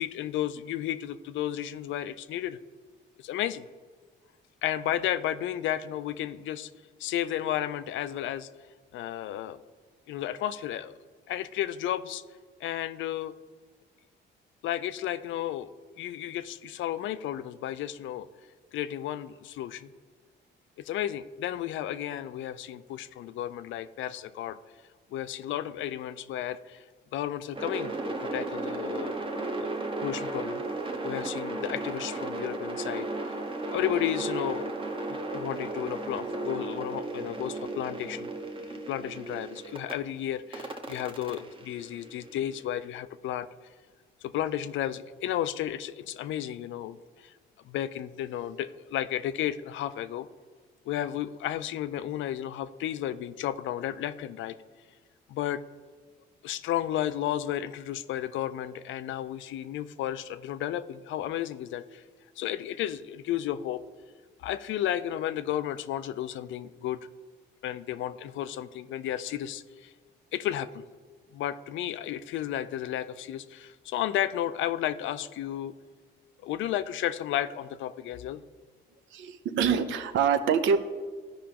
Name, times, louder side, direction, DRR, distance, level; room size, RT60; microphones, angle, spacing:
voice 1, 0.0-2.6 3.2-3.7 4.6-6.7 7.0-8.5 8.9-9.6 10.1-10.9 11.3-12.2 12.6-13.3 14.6-18.3 18.7-19.9 20.8-24.6 25.1-26.8 27.1-27.9 28.2-29.1 29.6-29.7 30.0-30.6 31.0-33.4 33.7-34.7 35.1-38.3 38.7-43.5 44.2-47.3 47.6-50.3 50.9-54.6 55.3-55.6 56.4-62.0 62.4-63.8 64.4-67.0 67.6-69.9 70.3-70.8 71.3-75.7 76.4-78.4, left 11 dB, 75° left, 13 dB, 0.4 m, -33 dB
sound 1, 27.5-39.9 40.5-42.7, right 2 dB, 25° right, 0.8 m, -35 dB
voice 2, 79.1-80.8, right 6 dB, 80° right, 9 dB, 0.6 m, -25 dB
12.5 x 5.0 x 2.9 m, 1.5 s
cardioid pair, 90°, 20 cm